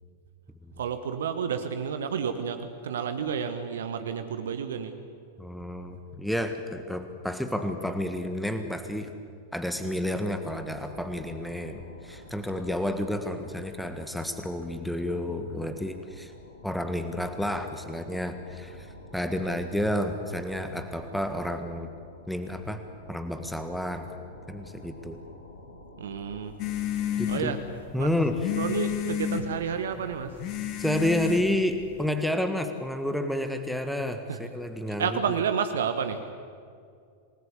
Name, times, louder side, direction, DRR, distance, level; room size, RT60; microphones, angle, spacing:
voice 1, 0.8-4.9 26.0-26.5 27.3-27.6 28.0-28.1 28.6-30.4 34.3-34.4 34.9-36.3, right 7 dB, 65° right, 9 dB, 1.3 m, -30 dB
voice 2, 5.4-9.1 9.5-16.3 16.6-18.9 19.1-21.9 22.3-22.8 23.1-24.1 24.5-25.2 27.2-27.5 27.9-28.4 30.8-35.1, left 1 dB, ahead, 7 dB, 1.7 m, -30 dB
sound 1, 10.0-28.1, left 2 dB, 70° left, 3.5 m, -49 dB
sound 2, 26.6-32.0, left 10 dB, 40° left, 2.1 m, -32 dB
28.0 x 19.5 x 8.3 m, 2.3 s
figure-of-eight pair, 90°, 0 cm